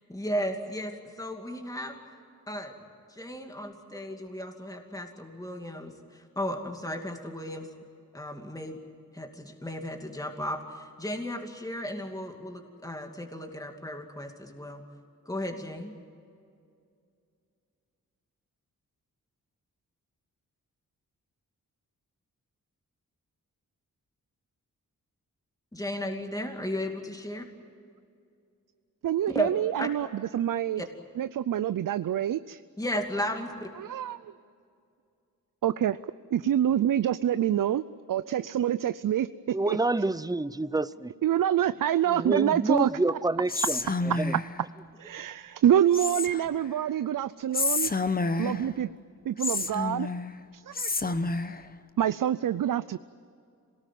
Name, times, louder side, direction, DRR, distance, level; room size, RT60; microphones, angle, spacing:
voice 1, 0.1-2.0 2.5-2.7 3.1-7.7 8.1-8.8 9.1-14.8 15.3-16.0 25.7-27.5 29.3-29.5 29.8-29.9 30.8-30.9 32.8-33.7, equal, 10° left, 3 dB, 2.6 m, -35 dB
voice 2, 29.0-30.1 30.3-30.8 31.2-32.6 33.8-34.3 35.6-36.0 36.3-39.8 41.2-42.9 45.0-47.9 48.4-48.9 49.2-50.1 50.5-51.2 52.0-53.0, right 10 dB, 70° right, 14 dB, 0.5 m, -26 dB
voice 3, 39.5-41.1 42.1-44.4, right 2 dB, 10° right, 17 dB, 0.6 m, -28 dB
Whispering, 43.5-44.6 45.9-46.6 47.5-48.7 49.4-50.3 50.7-51.6, left 3 dB, 25° left, 1.0 m, -29 dB
26.5 x 19.0 x 9.3 m, 2.4 s
wide cardioid pair, 105°, 34 cm